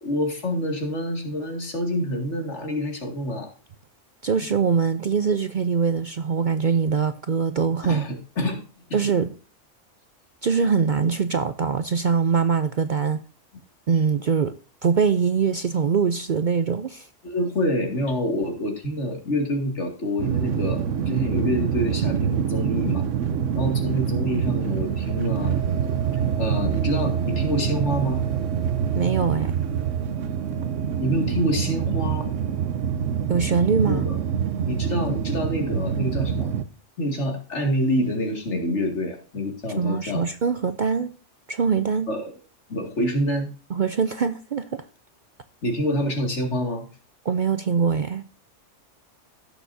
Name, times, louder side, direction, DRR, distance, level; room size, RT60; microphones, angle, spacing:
voice 1, 0.0-3.5 7.9-8.6 8.9-9.0 17.2-23.0 23.6-25.6 26.3-28.3 31.0-32.3 33.9-34.1 34.7-36.5 37.0-40.3 42.1-42.3 42.7-43.5 45.6-46.9, equal, 65° left, 2.6 m, -26 dB
voice 2, 4.2-8.0 8.9-9.3 10.4-13.2 13.9-14.5 14.8-17.1 28.9-29.5 33.3-34.1 39.8-41.1 41.5-42.1 43.7-44.8 47.2-48.2, right 6 dB, 50° right, 0.6 m, -23 dB
sound 1, 20.2-36.6, right 8 dB, 75° right, 1.1 m, -25 dB
16.5 x 7.0 x 2.7 m
omnidirectional pair, 1.3 m